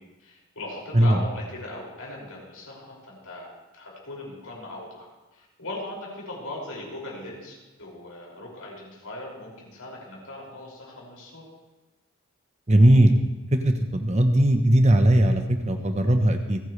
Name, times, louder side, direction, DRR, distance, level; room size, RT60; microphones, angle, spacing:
voice 1, 0.0-11.5, left 1 dB, 75° left, -3 dB, 6.1 m, -39 dB
voice 2, 12.7-13.1 13.5-16.6, right 1 dB, 30° right, 6 dB, 1.0 m, -19 dB
28.5 x 10.0 x 3.3 m, 1.2 s
head